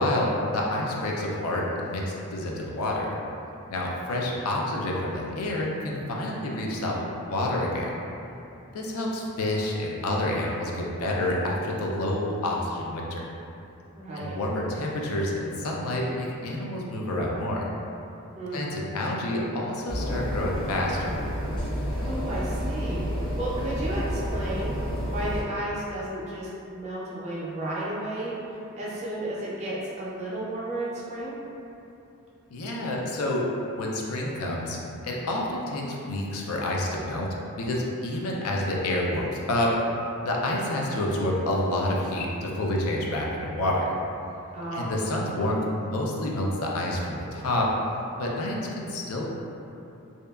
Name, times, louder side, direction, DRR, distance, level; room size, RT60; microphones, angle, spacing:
voice 1, 0.0-3.1 3.7-7.9 8.7-13.2 14.1-17.6 18.5-21.1 32.5-33.4 33.8-34.8 35.0-39.8 40.2-43.9 44.7-47.7 48.2-49.3, left 1 dB, 75° left, -2 dB, 0.4 m, -28 dB
voice 2, 14.0-14.4 18.4-18.8 21.9-28.3 28.8-31.4 44.5-44.9, right 1 dB, 30° right, -7 dB, 0.4 m, -33 dB
sound 1, 19.9-25.4, equal, 20° left, 0.6 m, -30 dB
2.7 x 2.3 x 2.2 m, 2.8 s
head